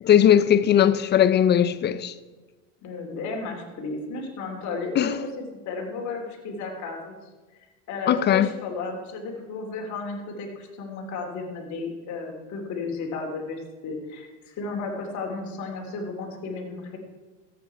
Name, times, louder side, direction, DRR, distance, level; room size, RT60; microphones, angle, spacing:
voice 1, 0.0-2.1 5.0-5.1 8.1-8.5, left 10 dB, 30° left, 0.5 m, -19 dB
voice 2, 2.8-7.2 7.9-17.0, left 3 dB, 45° left, 2.8 m, -33 dB
14.0 x 8.5 x 4.6 m
supercardioid pair, 110°, 38 cm